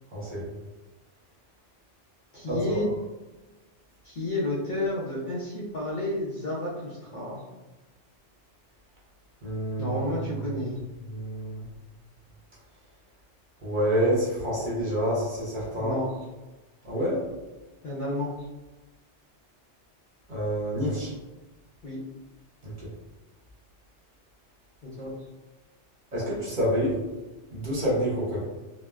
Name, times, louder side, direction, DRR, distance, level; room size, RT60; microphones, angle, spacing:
voice 1, 0.1-0.4 2.5-2.8 9.4-10.0 11.1-11.7 13.6-16.0 16.8-17.2 20.3-21.1 22.6-22.9 26.1-27.0 27.5-28.4, equal, 50° right, -6 dB, 0.8 m, -27 dB
voice 2, 2.3-2.9 4.0-7.4 9.8-10.8 15.8-16.1 17.8-18.3 21.8-22.0 24.8-25.1, left 1 dB, 55° left, -7 dB, 0.6 m, -31 dB
3.0 x 2.0 x 2.3 m, 1.1 s
omnidirectional pair, 1.2 m